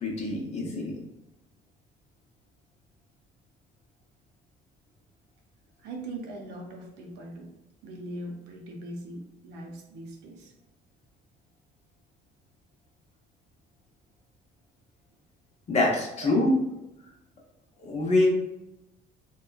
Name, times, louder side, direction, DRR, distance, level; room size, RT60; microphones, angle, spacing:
voice 1, 0.0-0.9 15.7-16.5 17.8-18.3, left 2 dB, 40° left, -1 dB, 0.8 m, -25 dB
voice 2, 5.8-7.5 7.8-10.5 16.2-16.3, right 1 dB, 90° right, 1 dB, 0.6 m, -40 dB
2.8 x 2.2 x 2.3 m, 0.93 s
cardioid pair, 110°, 17 cm